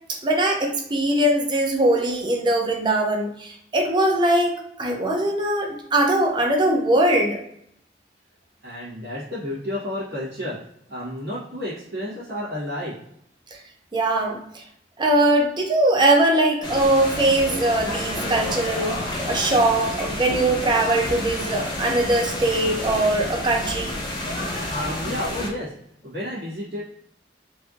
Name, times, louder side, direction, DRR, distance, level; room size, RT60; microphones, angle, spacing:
voice 1, 0.1-7.4 13.9-14.6 15.0-19.0 19.3-24.0, right 1 dB, 25° right, 1 dB, 0.5 m, -21 dB
voice 2, 8.6-10.6 10.9-12.9 16.3-16.4 24.7-25.7 26.0-26.8, left 1 dB, 70° right, -10 dB, 1.2 m, -31 dB
sound 1, 16.6-25.5, left 1 dB, 25° left, 0.7 m, -30 dB
3.2 x 2.6 x 2.4 m, 0.71 s
head